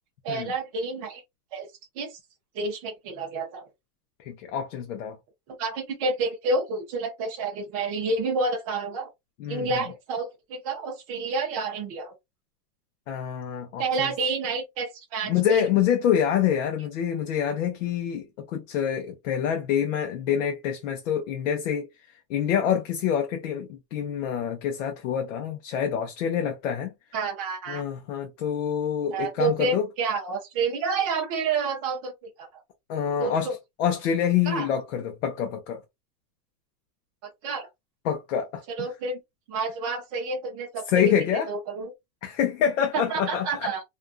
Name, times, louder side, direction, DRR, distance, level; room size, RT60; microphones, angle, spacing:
voice 1, 0.2-1.2 1.5-1.7 2.0-2.2 2.5-3.7 5.5-9.1 9.5-10.3 10.6-12.1 13.8-15.6 27.1-27.8 29.1-32.1 32.4-32.5 33.2-33.5 34.5-34.7 37.2-37.7 38.8-39.2 39.5-41.1 41.5-41.9 42.9-43.8, right 4 dB, 25° right, 0.6 m, -29 dB
voice 2, 4.2-5.2 9.4-9.7 13.1-14.1 15.3-21.9 22.3-26.9 27.7-29.9 32.9-33.5 33.8-35.8 38.0-38.9 40.9-41.5 42.2-43.7, left 8 dB, 55° left, 0.6 m, -26 dB
2.4 x 2.4 x 2.4 m
supercardioid pair, 180°, 47 cm